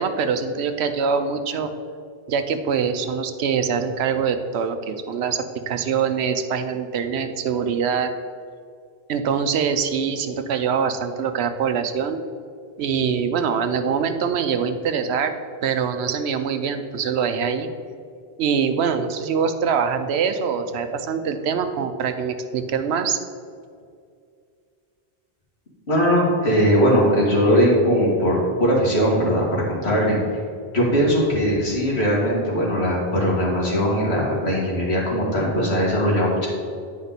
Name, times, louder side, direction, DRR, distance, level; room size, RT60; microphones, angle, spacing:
voice 1, 0.0-1.7 2.3-8.1 9.1-12.2 12.8-15.3 15.6-17.7 18.4-23.2, right 6 dB, 85° right, 8 dB, 0.9 m, -24 dB
voice 2, 25.9-30.4 30.7-36.5, equal, 85° left, -4 dB, 2.2 m, -20 dB
9.4 x 5.2 x 4.1 m, 2.3 s
omnidirectional pair, 1.1 m